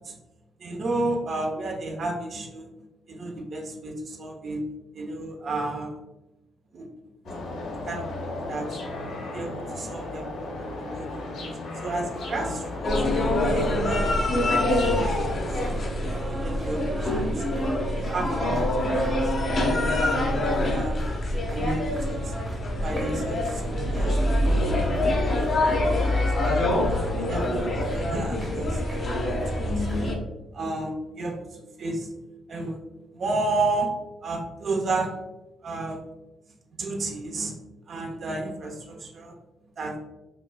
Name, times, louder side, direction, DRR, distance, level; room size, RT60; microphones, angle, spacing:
voice 1, 0.6-4.6 4.9-5.9 6.7-6.9 7.2-8.1 8.3-8.7 9.3-12.9 13.4-15.8 16.3-17.4 18.0-18.7 19.1-19.6 20.3-21.0 21.5-22.4 22.8-24.8 25.2-26.6 27.2-30.1 30.5-32.2 32.5-32.8 33.1-33.9 34.2-35.1 35.6-36.0 36.8-37.5 37.9-39.3 39.8-40.0, right 2 dB, 55° right, 1 dB, 0.8 m, -32 dB
sound 1, 7.2-15.7, left 2 dB, 75° left, 0.9 m, -35 dB
sound 2, 12.1-30.1, right 1 dB, 20° right, 1.1 m, -40 dB
sound 3, 12.8-30.2, left 1 dB, 50° left, 0.8 m, -25 dB
5.2 x 2.5 x 2.2 m, 1.0 s
cardioid pair, 90°, 0 cm